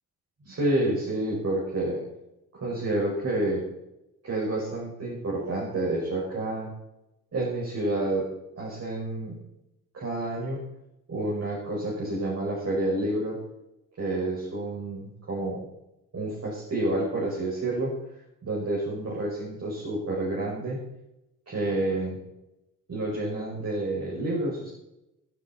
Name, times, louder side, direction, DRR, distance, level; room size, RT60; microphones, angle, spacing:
voice 1, 0.4-2.0 2.5-3.6 4.2-6.7 7.3-8.3 8.6-9.4 9.9-10.6 11.1-13.4 14.0-15.6 16.1-17.9 18.4-20.8 21.5-22.2 22.9-24.7, right 1 dB, 40° right, -5 dB, 5.9 m, -29 dB
15.5 x 12.0 x 4.4 m, 0.89 s
figure-of-eight pair, 45°, 39 cm